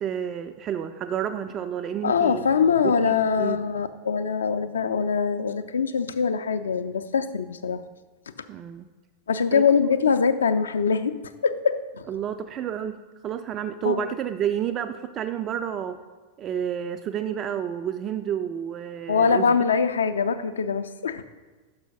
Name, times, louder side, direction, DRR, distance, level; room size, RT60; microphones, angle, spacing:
voice 1, 0.0-2.4 2.8-3.7 8.5-8.9 9.5-9.7 12.1-16.0 16.4-19.5, right 9 dB, 30° right, 9 dB, 0.3 m, -30 dB
voice 2, 2.0-7.8 9.3-12.0 13.8-14.0 19.1-21.2, left 6 dB, 70° left, 11 dB, 0.4 m, -23 dB
6.1 x 5.5 x 5.2 m, 1.3 s
figure-of-eight pair, 90°, 0 cm